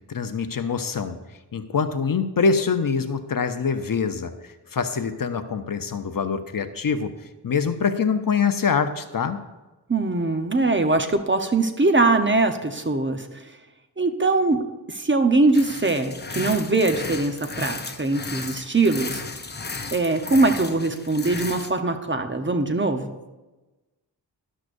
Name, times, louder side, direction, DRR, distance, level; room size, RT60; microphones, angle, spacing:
voice 1, 0.1-1.2 1.5-7.1 7.4-9.4, left 5 dB, 50° left, 9 dB, 0.7 m, -24 dB
voice 2, 9.9-13.4 14.0-14.6 14.9-19.2 19.9-23.1, right 3 dB, 25° right, 6 dB, 1.0 m, -22 dB
sound 1, 15.5-21.7, left 3 dB, 25° left, 0.8 m, -34 dB
12.5 x 12.0 x 2.6 m, 1.1 s
wide cardioid pair, 85°, 43 cm